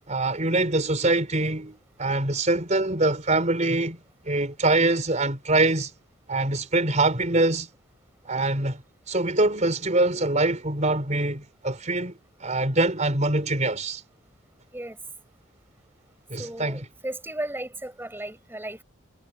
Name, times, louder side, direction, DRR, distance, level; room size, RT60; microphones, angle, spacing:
voice 1, 0.1-4.0 4.2-5.9 6.3-7.7 8.2-8.8 9.1-14.0 16.3-16.8, right 2 dB, 35° right, 4.4 m, -24 dB
voice 2, 16.4-18.8, right 1 dB, 10° right, 7.1 m, -35 dB
head